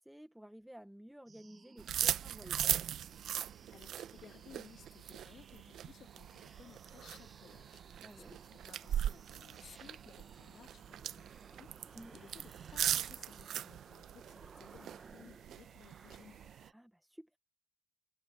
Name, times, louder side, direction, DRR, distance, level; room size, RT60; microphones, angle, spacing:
voice 1, 0.0-2.8 8.0-8.3 11.9-12.2 16.7-17.4, equal, 5° right, 0.6 m, -53 dB
sound 1, 1.3-16.7, right 4 dB, 35° right, 0.8 m, -59 dB
sound 2, 1.8-16.7, right 10 dB, 75° right, 0.6 m, -40 dB
voice 2, 3.7-16.5, left 8 dB, 60° left, 1.5 m, -59 dB
cardioid pair, 90°, 0 cm